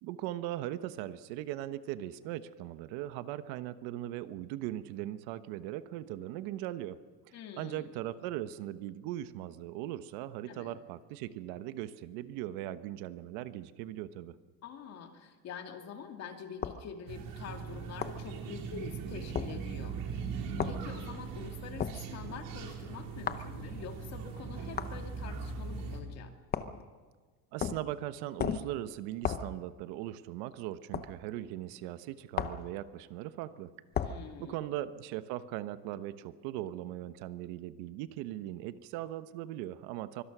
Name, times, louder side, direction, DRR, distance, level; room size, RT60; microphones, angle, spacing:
voice 1, 0.0-7.0 7.6-14.3 27.5-33.7 34.4-40.2, right 13 dB, 75° right, 12 dB, 1.2 m, -39 dB
voice 2, 7.3-7.9 10.5-10.8 14.6-26.3 34.0-34.6, left 7 dB, 40° left, 4 dB, 2.5 m, -46 dB
sound 1, 16.6-16.8 18.0-18.2 19.3-19.5 20.6-20.8 21.8-22.0 23.3-23.5 24.8-25.0 26.5-26.8 27.6-27.9 28.4-28.7 29.2-29.5 30.9-31.1 32.3-32.7 33.9-34.2, left 8 dB, 25° left, 0.8 m, -34 dB
sound 2, 17.1-26.0, right 5 dB, 55° right, 4.0 m, -40 dB
24.5 x 24.0 x 6.2 m, 1.4 s
cardioid pair, 165°, 39 cm